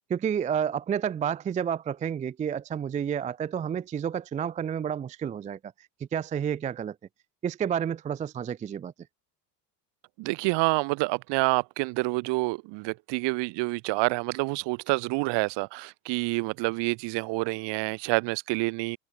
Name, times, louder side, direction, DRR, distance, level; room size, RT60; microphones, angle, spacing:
voice 1, 0.1-5.6 6.1-7.0 7.4-8.9, right 8 dB, 15° right, 0.4 m, -30 dB
voice 2, 10.2-19.0, right 25 dB, 55° right, 1.8 m, -28 dB
hypercardioid pair, 85°, 49 cm